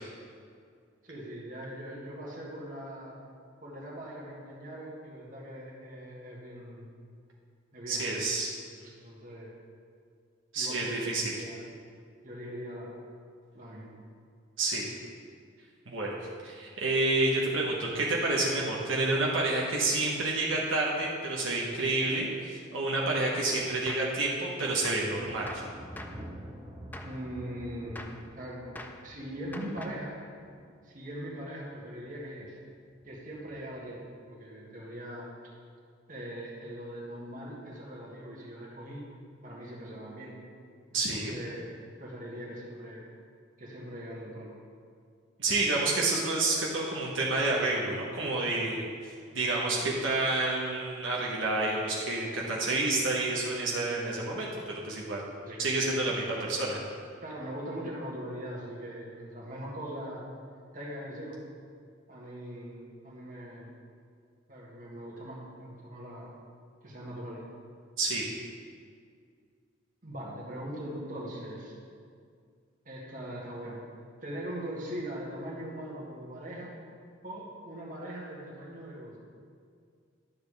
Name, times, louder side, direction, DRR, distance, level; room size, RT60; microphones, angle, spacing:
voice 1, 1.0-3.2 3.6-7.0 7.7-8.3 8.8-9.6 10.6-11.7 12.2-13.0 13.5-13.9 27.0-28.6 29.0-30.2 30.8-32.5 33.1-34.0 34.3-35.3 36.1-39.1 39.4-40.4 40.9-43.1 43.6-44.6 55.4-55.6 57.2-60.3 60.7-61.4 62.1-63.8 64.5-66.4 66.8-67.4 70.0-71.7 72.9-73.9 74.2-76.7 77.2-79.2, equal, 45° right, -4 dB, 1.7 m, -41 dB
voice 2, 7.9-8.5 10.5-11.2 14.6-14.9 15.9-16.1 16.4-25.6 40.9-41.3 45.4-55.3 55.6-56.8 68.0-68.2, right 2 dB, 75° right, -4 dB, 1.1 m, -29 dB
Gunshot gunfire, 23.9-24.2 24.8-25.1 25.5-26.3 26.9-27.2 27.9-28.3 28.8-29.1 29.5-30.1, left 1 dB, 10° left, 0.4 m, -44 dB
Thunder, 25.2-31.7 32.0-32.6 33.0-33.9, equal, 20° right, 1.0 m, -48 dB
11.5 x 7.0 x 3.4 m, 2.2 s
head